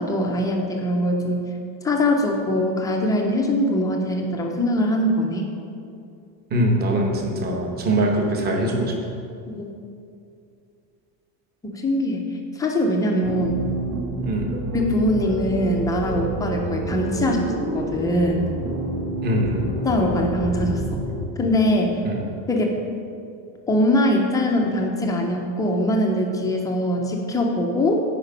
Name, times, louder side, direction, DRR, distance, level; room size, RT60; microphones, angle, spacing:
voice 1, 0.0-1.5 1.8-5.5 9.5-9.6 11.8-12.3 12.6-13.6 14.7-18.4 19.8-21.0 21.4-22.0 22.5-22.8 23.7-28.0, left 1 dB, 10° left, 1 dB, 0.3 m, -22 dB
voice 2, 6.5-8.9 14.2-14.5 19.2-19.7 22.0-22.2, right 1 dB, 25° right, 1 dB, 0.9 m, -22 dB
sound 1, 13.2-21.2, right 1 dB, 55° right, 1.4 m, -28 dB
8.8 x 5.1 x 5.4 m, 2.5 s
cardioid pair, 165°, 41 cm